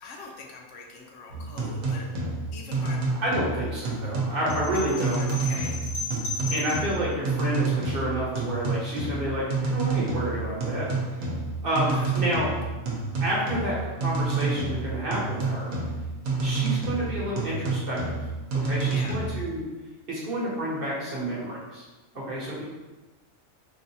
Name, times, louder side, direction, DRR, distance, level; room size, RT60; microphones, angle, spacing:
voice 1, 0.0-2.1 2.5-3.0 3.6-3.7 4.7-5.8 11.9-12.5 18.8-19.2, left 3 dB, 70° left, 0 dB, 0.9 m, -43 dB
sound 1, 1.3-19.4, right 3 dB, 75° right, 1.1 m, -29 dB
voice 2, 3.2-5.2 6.5-10.9 11.6-12.5 13.2-15.7 16.4-18.1 18.6-19.6 20.1-21.8 22.1-22.6, right 1 dB, 45° right, -6 dB, 1.1 m, -29 dB
sound 2, 4.5-7.0, left 3 dB, 55° left, 1.3 m, -35 dB
3.8 x 2.5 x 2.7 m, 1.2 s
omnidirectional pair, 1.4 m